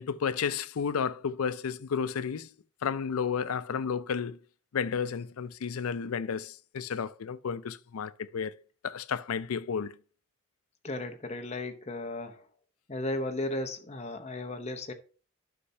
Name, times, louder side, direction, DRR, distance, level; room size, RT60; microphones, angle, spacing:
voice 1, 0.0-2.5 2.8-4.4 4.7-8.5 8.8-10.0, left 6 dB, 85° left, 0.4 m, -32 dB
voice 2, 10.8-12.5 12.9-14.9, left 1 dB, 30° left, 0.8 m, -35 dB
11.5 x 5.5 x 2.7 m
head